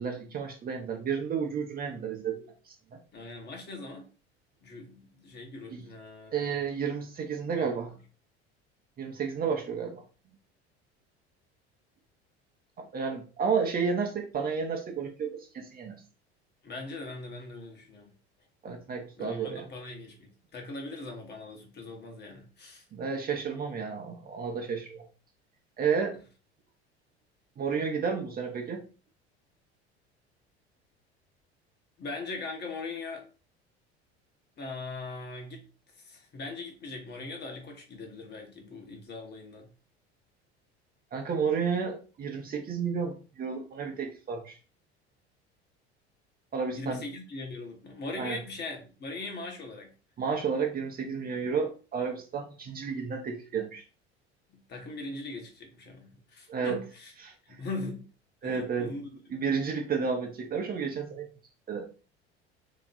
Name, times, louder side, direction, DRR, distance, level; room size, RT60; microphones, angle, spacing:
voice 1, 0.0-3.0 5.7-5.9 6.3-7.9 9.0-10.0 12.8-16.0 18.6-19.6 22.9-25.1 25.8-26.2 27.6-28.9 41.1-44.6 46.5-47.0 48.2-48.4 50.2-53.8 56.5-56.8 57.2-57.3 58.4-58.9 59.3-61.3 61.7-61.9, right 6 dB, 30° right, 0.9 m, -31 dB
voice 2, 3.1-4.1 4.6-6.7 7.6-7.8 16.6-18.1 19.2-22.8 32.0-33.3 34.6-35.7 35.9-39.7 46.7-49.9 54.5-57.1 57.4-58.1 58.4-59.1, left 3 dB, 30° left, 1.3 m, -40 dB
3.4 x 3.0 x 4.1 m
figure-of-eight pair, 65°, 32 cm